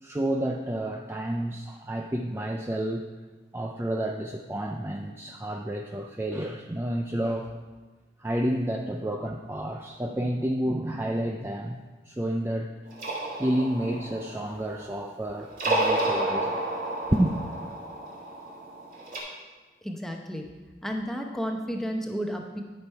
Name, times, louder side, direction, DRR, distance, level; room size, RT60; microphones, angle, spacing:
voice 1, 0.0-3.1 3.5-7.5 8.2-11.8 12.0-12.7 13.4-16.6 17.1-17.4, right 1 dB, 15° right, 2 dB, 0.4 m, -30 dB
sound 1, 12.9-15.1 15.5-19.2, right 1 dB, 50° right, 2.3 m, -31 dB
voice 2, 19.8-20.5 20.8-22.6, equal, ahead, 2 dB, 0.8 m, -32 dB
12.0 x 6.0 x 4.6 m, 1.3 s
head